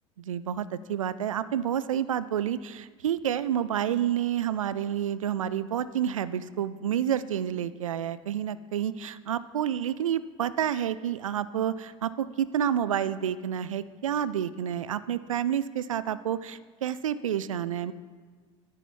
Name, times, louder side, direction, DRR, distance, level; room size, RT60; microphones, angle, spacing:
voice 1, 0.2-17.9, right 9 dB, 85° right, 16 dB, 0.4 m, -29 dB
10.0 x 9.2 x 5.4 m, 1.5 s
hypercardioid pair, 70°, 17 cm